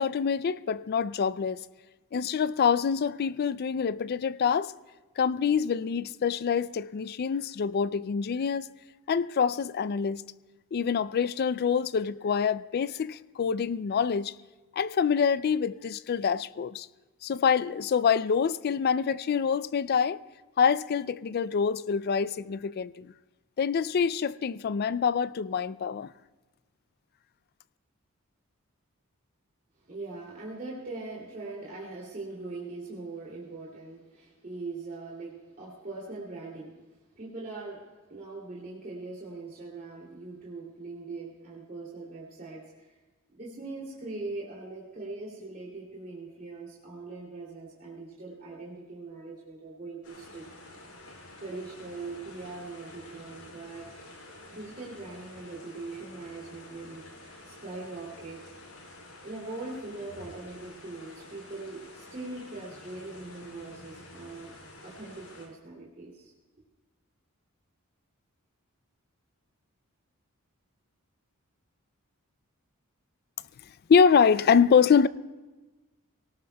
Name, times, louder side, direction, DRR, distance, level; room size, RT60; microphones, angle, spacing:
voice 1, 0.0-1.6 2.1-4.7 5.2-8.7 9.1-10.2 10.7-14.3 14.7-16.9 17.2-20.2 20.6-23.1 23.6-26.1 73.9-75.1, left 6 dB, 45° left, 0.3 m, -25 dB
voice 2, 29.8-36.7 37.2-37.8 38.1-43.0 43.3-50.4 51.4-53.9 54.5-57.0 57.4-58.4 59.2-64.5 64.8-66.3, right 3 dB, 40° right, 2.7 m, -41 dB
sound 1, 50.0-65.5, left 2 dB, 75° left, 6.2 m, -49 dB
23.5 x 18.5 x 2.3 m
head